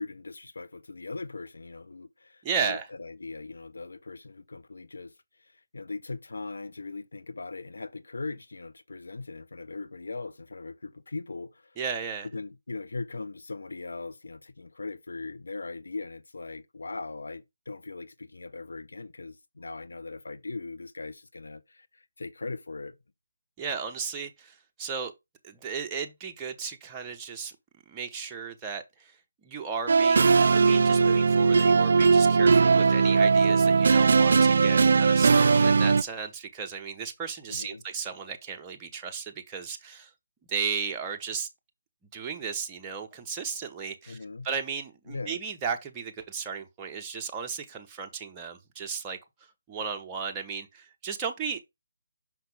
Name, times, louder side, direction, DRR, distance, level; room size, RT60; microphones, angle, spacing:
voice 1, 0.0-5.1 5.4-11.8 12.3-22.9 37.5-37.8 44.1-44.5 45.1-45.4, left 3 dB, 65° left, 0.9 m, -39 dB
voice 2, 2.4-2.9 11.8-12.3 23.6-25.1 25.4-27.5 27.9-40.1 40.5-41.5 42.1-49.2 49.7-51.6, right 6 dB, 15° right, 1.0 m, -35 dB
sound 1, 29.9-36.0, right 5 dB, 55° right, 0.4 m, -19 dB
5.8 x 5.6 x 3.5 m
figure-of-eight pair, 150°, 0 cm